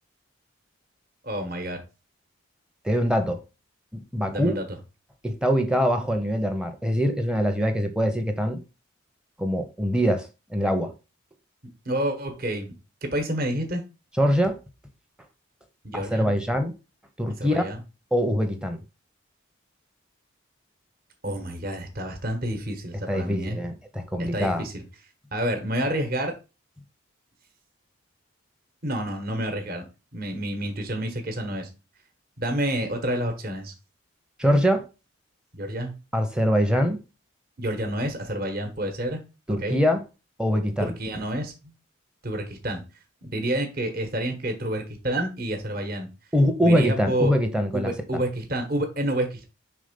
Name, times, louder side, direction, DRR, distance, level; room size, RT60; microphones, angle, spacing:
voice 1, 1.2-1.8 4.3-4.7 11.8-12.7 13.0-13.8 15.8-16.3 17.4-17.8 21.2-23.6 24.2-24.8 25.3-26.4 28.8-29.8 30.1-31.7 32.4-33.7 35.5-35.9 37.6-39.2 39.6-39.8 40.8-41.5 42.2-42.8 43.2-46.1 46.6-47.3 47.7-49.4, right 1 dB, 45° right, 1.2 m, -29 dB
voice 2, 2.8-3.4 3.9-4.6 5.2-8.6 9.4-10.9 14.2-14.6 15.9-16.7 17.2-17.7 18.1-18.8 23.1-24.7 34.4-34.9 36.1-37.0 39.5-40.0 40.4-40.9 46.3-47.9, equal, 5° right, 0.7 m, -23 dB
5.2 x 3.7 x 5.2 m
head